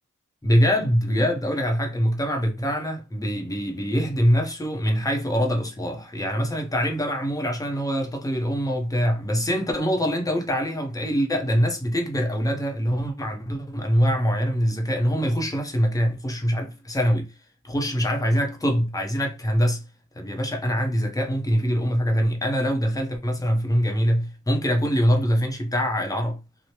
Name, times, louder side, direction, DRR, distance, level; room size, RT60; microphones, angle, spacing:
voice 1, 0.4-17.4 17.6-19.8 20.1-26.4, equal, 10° left, 0.7 m, -24 dB
3.1 x 2.1 x 2.8 m
wide cardioid pair, 60°, 31 cm